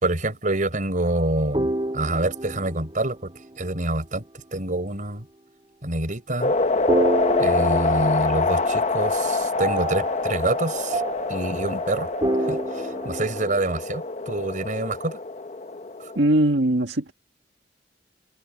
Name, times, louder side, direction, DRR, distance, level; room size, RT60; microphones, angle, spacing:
voice 1, 0.0-4.3 4.5-5.3 5.8-6.5 7.4-11.0 11.3-12.1 12.5-15.2 16.0-16.1, right 2 dB, 50° right, 5.0 m, -27 dB
sound 1, 1.5-3.8 6.9-9.1 9.6-13.8, right 1 dB, 30° right, 3.2 m, -29 dB
sound 2, 6.4-16.3, left 3 dB, 40° left, 1.2 m, -26 dB
voice 2, 16.2-17.1, right 1 dB, 90° right, 1.7 m, -20 dB
head